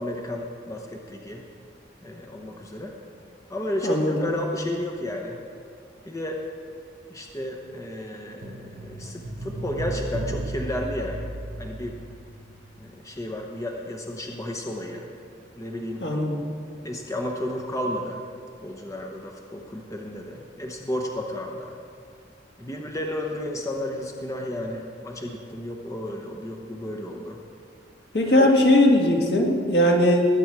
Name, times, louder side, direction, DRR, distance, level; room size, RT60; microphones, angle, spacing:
voice 1, 0.0-1.4 2.0-2.9 3.5-5.4 6.1-6.4 7.1-11.3 11.6-12.0 12.8-15.1 15.6-16.1 16.8-18.2 18.6-21.8 22.6-27.4 28.2-28.5, left 1 dB, 20° left, 1 dB, 0.9 m, -32 dB
voice 2, 3.8-4.3 16.0-16.4 28.1-30.3, left 1 dB, 65° left, 0 dB, 1.9 m, -19 dB
sound 1, 8.4-12.9 13.1-13.2, right 1 dB, 90° right, 1.1 m, -34 dB
19.5 x 9.2 x 4.7 m, 2.3 s
head